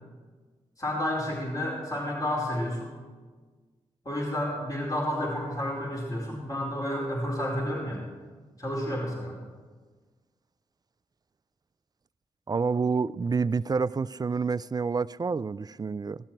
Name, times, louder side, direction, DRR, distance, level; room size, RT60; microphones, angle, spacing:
voice 1, 0.8-2.9 4.0-8.0 8.6-9.4, left 1 dB, 25° left, 4.6 m, -30 dB
voice 2, 12.5-16.2, right 5 dB, 30° right, 0.4 m, -28 dB
16.5 x 13.0 x 4.5 m
supercardioid pair, 40°, 13 cm